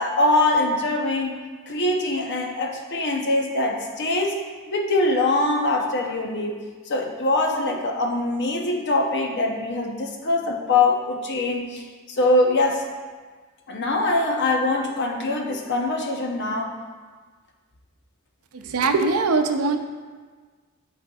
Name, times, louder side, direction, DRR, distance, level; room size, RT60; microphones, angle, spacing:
voice 1, 0.0-1.4 1.7-4.4 4.7-6.6 6.9-12.8 13.7-16.7, left 2 dB, 55° left, 2 dB, 0.8 m, -23 dB
voice 2, 18.5-19.8, right 3 dB, 90° right, 6 dB, 0.5 m, -21 dB
11.0 x 4.3 x 2.4 m, 1.5 s
head